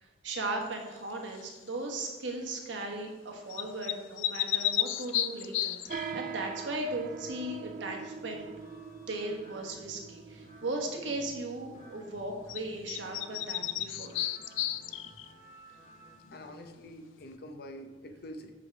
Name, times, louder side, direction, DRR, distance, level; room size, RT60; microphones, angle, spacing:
voice 1, 0.0-8.5 9.1-14.3, right 2 dB, 75° right, 1 dB, 1.3 m, -37 dB
sound 1, 1.3-1.7 3.5-6.1 12.5-12.6 12.9-15.3, left 12 dB, 90° left, 0.4 m, -33 dB
sound 2, 5.8-16.4, right 1 dB, 40° left, 1.4 m, -55 dB
sound 3, 5.9-13.7, right 6 dB, 45° right, 0.4 m, -44 dB
voice 2, 16.3-18.5, equal, 55° left, 6 dB, 0.8 m, -45 dB
8.3 x 3.6 x 5.9 m, 1.2 s
head